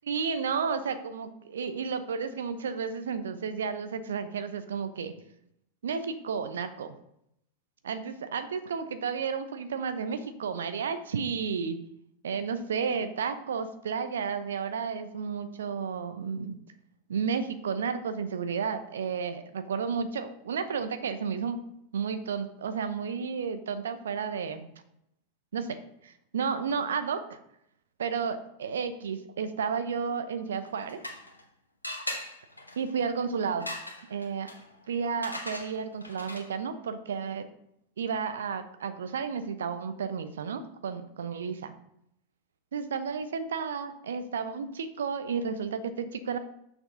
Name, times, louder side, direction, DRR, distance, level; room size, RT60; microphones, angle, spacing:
voice 1, 0.1-5.1 5.8-6.9 7.8-11.8 12.2-16.6 17.1-21.6 21.9-24.7 25.5-25.8 26.0-27.4 28.0-31.0 32.8-33.7 34.1-34.5 34.9-37.5 38.0-41.7 42.7-46.4, right 6 dB, 65° right, 10 dB, 0.8 m, -32 dB
sound 1, 30.5-31.5 31.8-36.7, left 1 dB, 85° left, 1.1 m, -40 dB
6.3 x 6.3 x 5.1 m, 0.76 s
figure-of-eight pair, 90°, 0 cm